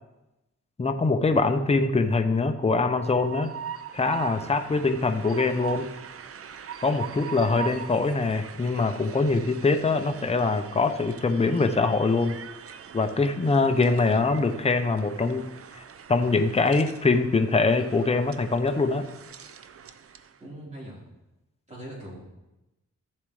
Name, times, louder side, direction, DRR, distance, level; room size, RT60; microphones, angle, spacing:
voice 1, 0.8-3.5 3.9-5.9 6.8-12.4 12.9-15.4 16.1-19.1, left 3 dB, 20° left, 7 dB, 0.7 m, -23 dB
Train, 2.6-20.4, right 8 dB, 50° right, 0.6 m, -41 dB
voice 2, 20.4-21.0 21.7-22.2, right 1 dB, 25° right, -6 dB, 4.0 m, -41 dB
14.5 x 7.4 x 3.2 m, 0.98 s
cardioid pair, 90°, 29 cm